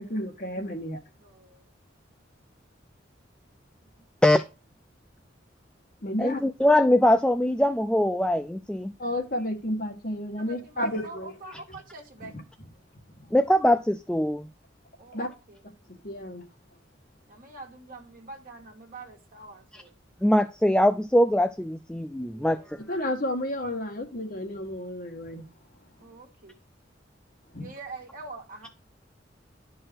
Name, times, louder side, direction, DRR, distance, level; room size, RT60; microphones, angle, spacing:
voice 1, 0.0-1.0 6.0-6.4 9.0-11.3 13.2-13.3 15.1-15.3 15.9-16.5 22.9-25.4 27.5-27.7, left 1 dB, 50° left, 1.6 m, -31 dB
voice 2, 1.2-1.6 3.8-4.0 10.4-12.5 15.0-15.6 17.3-20.0 22.3-22.9 26.0-26.6 27.6-28.7, right 3 dB, 50° right, 1.8 m, -45 dB
voice 3, 6.2-8.9 13.3-14.5 19.7-19.8 20.2-22.8, left 1 dB, 5° left, 0.3 m, -22 dB
11.0 x 4.7 x 4.5 m
head